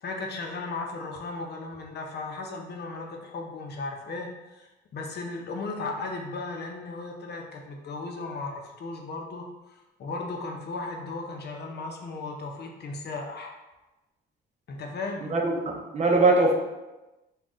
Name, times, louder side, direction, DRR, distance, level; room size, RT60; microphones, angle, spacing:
voice 1, 0.0-9.5 10.0-13.5 14.7-15.3, left 3 dB, 55° left, 2 dB, 0.7 m, -36 dB
voice 2, 15.3-16.5, right 2 dB, 35° right, 1 dB, 0.6 m, -22 dB
3.8 x 2.3 x 3.7 m, 1.1 s
cardioid pair, 90°, 20 cm